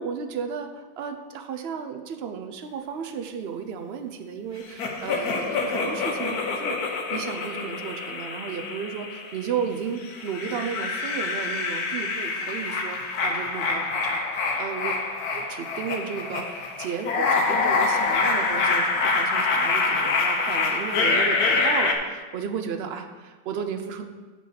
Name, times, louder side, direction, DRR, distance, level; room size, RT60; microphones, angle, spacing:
voice 1, 0.0-14.9 15.3-24.0, right 6 dB, 60° right, 7 dB, 0.7 m, -33 dB
sound 1, 4.8-9.5 10.0-21.9, left 4 dB, 65° left, 1.4 m, -26 dB
7.4 x 6.0 x 5.8 m, 1.3 s
omnidirectional pair, 1.8 m